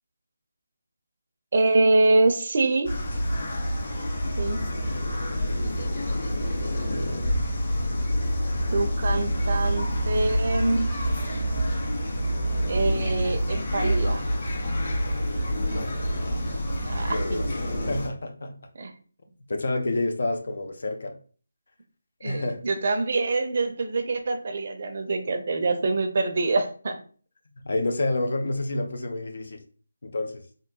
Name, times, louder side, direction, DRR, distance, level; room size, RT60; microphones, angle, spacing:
voice 1, 1.5-3.0 4.4-4.6 8.7-10.9 12.6-14.3 16.9-17.2 18.7-18.9 22.2-27.0, right 2 dB, 45° right, 0.6 m, -25 dB
sound 1, 2.8-18.1, equal, 40° left, 2.1 m, -27 dB
voice 2, 5.3-6.0 15.5-16.0 17.1-17.5 17.9-18.7 19.5-21.2 22.2-22.6 27.5-29.6 30.0-30.4, left 2 dB, 60° left, 0.7 m, -29 dB
3.7 x 2.5 x 3.8 m
figure-of-eight pair, 155°, 0 cm